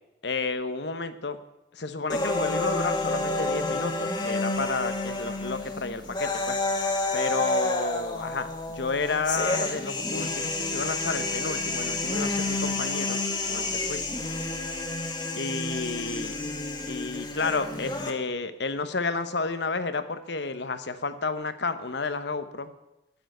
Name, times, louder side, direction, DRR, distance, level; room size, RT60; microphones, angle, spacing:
voice 1, 0.2-1.4 1.7-6.6 7.1-14.0 15.4-16.3 16.9-22.7, left 4 dB, 70° left, 11 dB, 1.0 m, -31 dB
sound 1, 2.1-18.1, left 2 dB, 25° left, 1.4 m, -29 dB
9.9 x 9.0 x 9.1 m, 0.95 s
head